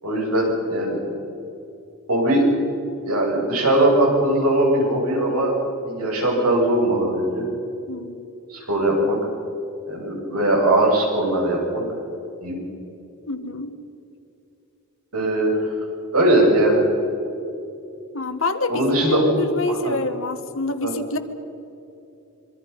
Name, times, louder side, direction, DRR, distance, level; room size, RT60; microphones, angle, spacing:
voice 1, 0.0-1.0 2.1-2.5 3.0-5.5 5.8-7.5 8.5-9.2 9.8-11.8 12.4-12.6 15.1-15.7 16.1-16.9 18.7-19.3 19.7-19.9 20.8-20.9, right 1 dB, 90° right, -1 dB, 7.7 m, -20 dB
voice 2, 7.9-8.3 13.3-13.7 18.1-21.2, left 2 dB, 65° left, 8 dB, 1.7 m, -27 dB
25.5 x 24.5 x 5.6 m, 2.8 s
head